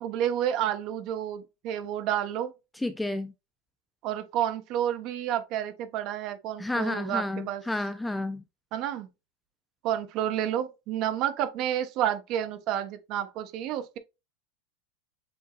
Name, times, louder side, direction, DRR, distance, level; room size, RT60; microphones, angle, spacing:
voice 1, 0.0-2.5 4.0-7.6 8.7-9.1 9.8-14.0, right 11 dB, 45° right, 1.0 m, -30 dB
voice 2, 2.8-3.3 6.6-8.4, left 2 dB, 5° left, 0.4 m, -31 dB
7.9 x 2.7 x 2.4 m
supercardioid pair, 140°, 0 cm